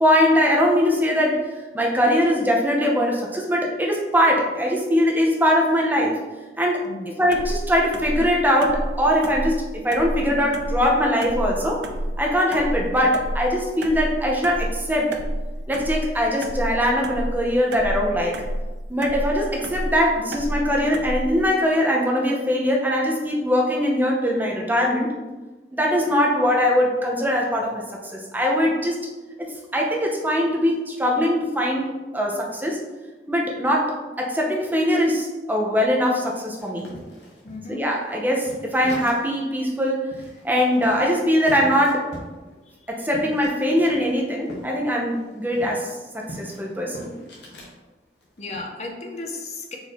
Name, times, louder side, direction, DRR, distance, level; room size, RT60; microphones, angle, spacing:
voice 1, 0.0-6.2 6.6-11.8 12.2-15.2 15.7-18.4 18.9-25.1 25.7-27.8 28.1-29.0 29.4-31.9 32.1-32.8 33.3-36.9 37.7-40.0 40.4-42.1 42.9-47.2, equal, 10° right, -1 dB, 0.6 m, -21 dB
sound 1, 7.3-21.5, right 1 dB, 75° right, 0.4 m, -30 dB
sound 2, 36.6-39.4 39.7-39.8 40.1-44.7 45.0-47.7 48.2-48.6, equal, 75° left, 1.1 m, -41 dB
voice 2, 37.4-37.8 42.5-42.9 48.4-49.8, left 3 dB, 40° left, 1 dB, 0.6 m, -35 dB
4.6 x 2.7 x 4.1 m, 1.2 s
head